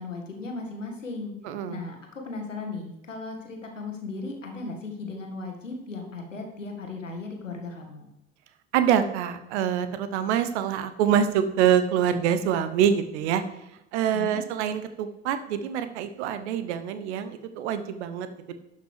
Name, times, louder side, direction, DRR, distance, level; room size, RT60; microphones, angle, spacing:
voice 1, 0.0-1.3 1.7-8.1 14.1-14.4, left 3 dB, 85° left, 3 dB, 1.5 m, -36 dB
voice 2, 1.4-1.8 8.7-13.4 13.9-18.5, right 9 dB, 65° right, 11 dB, 0.9 m, -25 dB
11.5 x 5.7 x 4.8 m, 0.90 s
figure-of-eight pair, 60°, 37 cm